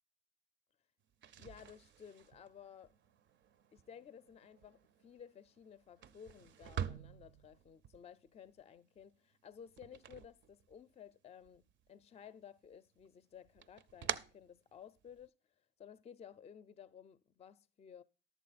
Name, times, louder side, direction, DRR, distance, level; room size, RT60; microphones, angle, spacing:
sound 1, 1.1-11.1 11.4-12.3 12.6-15.3, right 9 dB, 65° right, 0.5 m, -47 dB
voice 1, 1.4-2.9 3.7-15.3 15.8-18.0, left 8 dB, 30° left, 0.4 m, -56 dB
11.0 x 7.2 x 4.0 m
cardioid pair, 90°, 20 cm